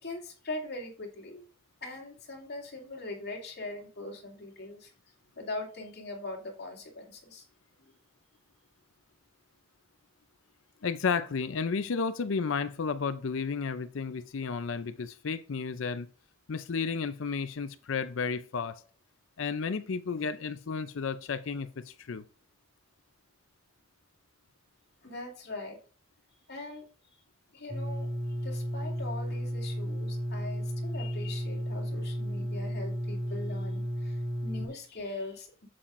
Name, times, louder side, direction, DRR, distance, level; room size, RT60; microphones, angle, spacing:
voice 1, 0.0-1.5 1.8-4.9 5.4-7.4 7.8-7.9 25.0-25.8 26.5-26.8 27.5-28.1 28.4-35.7, left 2 dB, 50° left, 2.5 m, -41 dB
voice 2, 10.8-16.1 16.5-18.8 19.4-22.2, left 5 dB, 65° left, 0.5 m, -32 dB
sound 1, 27.7-34.7, equal, 30° right, 2.8 m, -33 dB
8.4 x 7.5 x 2.5 m
head